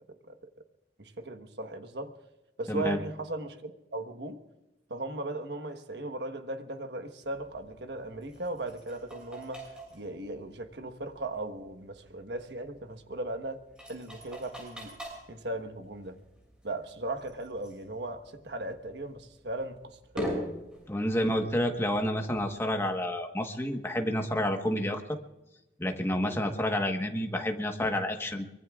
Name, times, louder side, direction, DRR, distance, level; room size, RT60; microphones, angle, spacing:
voice 1, 1.0-2.1 2.6-4.4 4.9-9.6 9.9-13.6 13.9-15.0 15.3-16.2 16.6-20.5, right 2 dB, 80° right, 7 dB, 1.3 m, -37 dB
voice 2, 2.7-3.0 20.9-25.2 25.8-28.4, left 1 dB, 15° left, 4 dB, 1.3 m, -29 dB
sound 1, 7.2-23.0, right 1 dB, 5° right, 6.7 m, -45 dB
24.0 x 23.0 x 2.4 m, 0.97 s
head